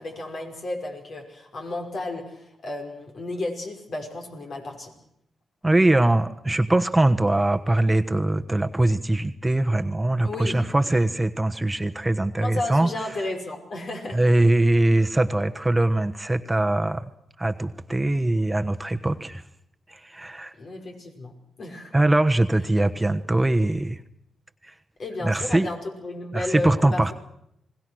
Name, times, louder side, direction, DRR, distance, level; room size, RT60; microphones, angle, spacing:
voice 1, 0.0-4.9 10.2-10.6 12.4-14.2 14.8-14.9 20.5-21.9 22.6-22.7 25.0-27.1, left 2 dB, 60° left, 3 dB, 5.6 m, -33 dB
voice 2, 5.6-12.9 14.1-17.1 17.4-19.4 19.9-20.5 21.9-24.0 24.6-24.7 25.2-25.7 26.3-27.1, right 2 dB, 15° right, 8 dB, 1.2 m, -22 dB
28.0 x 20.5 x 6.3 m, 0.76 s
supercardioid pair, 55°, 0 cm